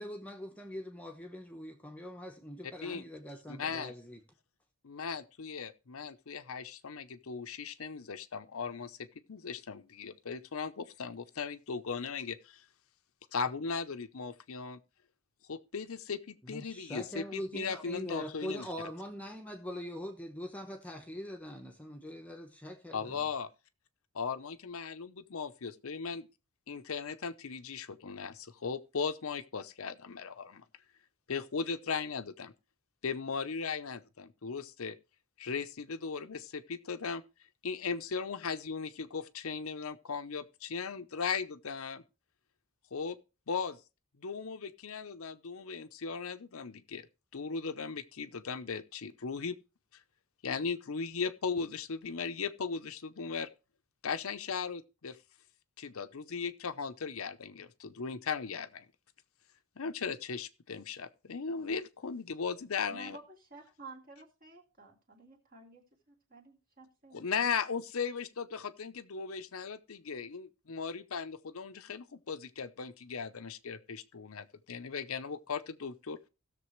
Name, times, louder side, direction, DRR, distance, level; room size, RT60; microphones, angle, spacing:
voice 1, 0.0-4.2 16.4-23.2, left 1 dB, 5° left, 1.0 m, -42 dB
voice 2, 3.5-3.9 4.8-12.7 13.3-14.8 15.5-18.7 22.9-23.5 24.1-26.3 26.7-30.6 31.3-32.5 33.0-35.0 35.4-37.2 37.6-42.0 42.9-43.2 43.5-43.8 44.2-47.1 47.3-49.6 50.4-53.5 54.0-55.2 55.8-58.9 59.8-63.2 67.1-76.2, left 5 dB, 75° left, 0.7 m, -37 dB
voice 3, 62.9-67.2, right 3 dB, 40° right, 2.6 m, -52 dB
17.0 x 6.7 x 3.2 m
head